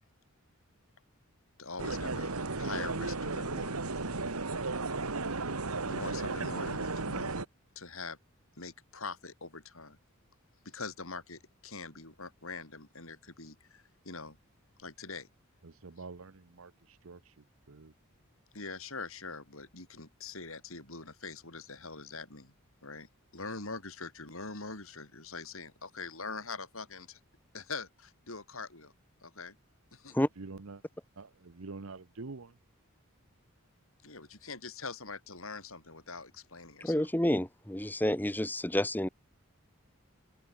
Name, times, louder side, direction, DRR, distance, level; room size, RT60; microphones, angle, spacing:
voice 1, 1.6-3.8 5.8-7.4 7.7-8.2 8.6-10.0 10.6-14.4 14.8-15.3 18.5-22.5 22.8-23.1 23.3-27.2 27.5-28.9 29.2-29.5 29.9-30.2 34.0-37.1, left 4 dB, 70° left, 6.3 m, -43 dB
sound 1, 1.8-7.5, right 3 dB, 90° right, 2.0 m, -34 dB
voice 2, 15.6-17.3 17.7-17.9 30.4-30.8 31.2-32.5, right 3 dB, 70° right, 0.9 m, -46 dB
voice 3, 36.8-39.1, left 1 dB, 10° left, 1.3 m, -29 dB
head